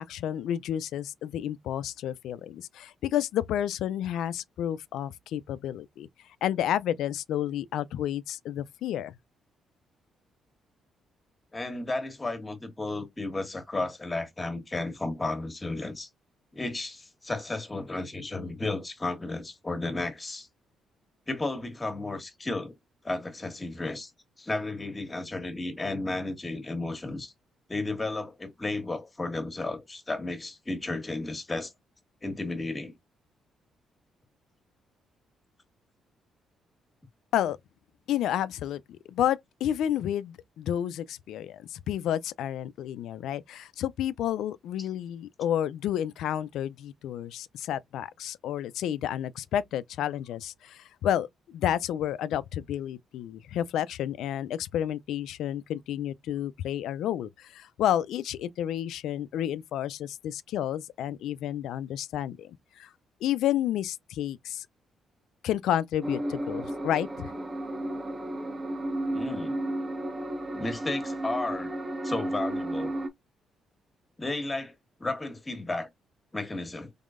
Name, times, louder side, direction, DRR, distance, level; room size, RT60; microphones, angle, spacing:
voice 1, 0.0-6.1 6.4-9.2 37.3-37.6 38.1-62.9 63.2-64.7 65.4-67.3, left 11 dB, 80° left, 0.3 m, -30 dB
voice 2, 11.5-16.1 16.5-20.5 21.3-22.7 23.0-24.1 24.4-27.3 27.7-31.7 32.2-32.9 44.8-44.9 69.1-69.6 70.5-71.7 72.0-73.0 74.2-74.7 75.0-75.9 76.3-76.9, left 2 dB, 20° left, 1.4 m, -33 dB
sound 1, 66.0-73.1, right 1 dB, 25° right, 1.3 m, -33 dB
3.6 x 3.5 x 2.4 m
cardioid pair, 90°, 0 cm